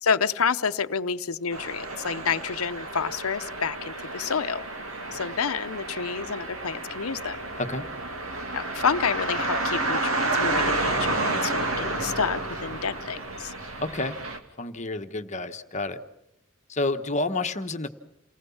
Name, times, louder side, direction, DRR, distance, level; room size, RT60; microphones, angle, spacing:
voice 1, 0.0-4.7 5.1-7.4 8.5-13.5, left 6 dB, 90° left, 12 dB, 0.8 m, -29 dB
sound 1, 1.5-14.4, right 2 dB, 80° right, 2.6 m, -30 dB
voice 2, 13.8-14.2 14.6-16.0 16.7-17.9, left 2 dB, 35° left, 7 dB, 1.2 m, -29 dB
29.0 x 19.0 x 7.2 m, 0.89 s
head